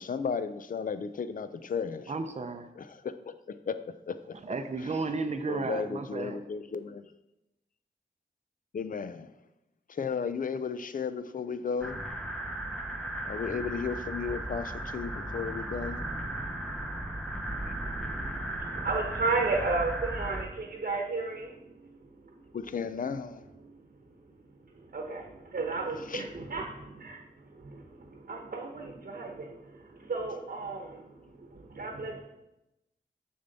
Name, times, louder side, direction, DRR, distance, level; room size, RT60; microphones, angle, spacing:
voice 1, 0.0-2.1 2.8-4.4 5.5-7.1 8.7-9.3 9.9-12.0 13.3-16.1 17.7-17.8 22.5-23.4 26.1-26.3, left 6 dB, 50° left, 12 dB, 0.4 m, -34 dB
voice 2, 2.1-2.7 4.4-6.4, right 3 dB, 40° right, 7 dB, 0.6 m, -33 dB
sound 1, 11.8-20.4, right 1 dB, 5° left, 0.8 m, -36 dB
voice 3, 17.6-22.5 23.6-23.8 24.1-32.2, right 3 dB, 55° right, 1 dB, 1.0 m, -35 dB
6.9 x 6.5 x 4.0 m, 0.93 s
wide cardioid pair, 105°, 18 cm